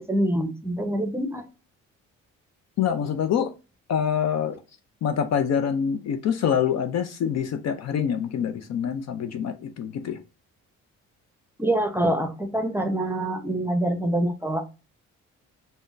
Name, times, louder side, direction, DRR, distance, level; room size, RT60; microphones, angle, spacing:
voice 1, 0.0-1.4 11.6-14.6, right 1 dB, 5° right, 0.7 m, -25 dB
voice 2, 2.8-3.5 3.9-4.6 5.0-10.2, left 8 dB, 50° left, 0.5 m, -25 dB
3.5 x 2.1 x 2.5 m
supercardioid pair, 65°, 34 cm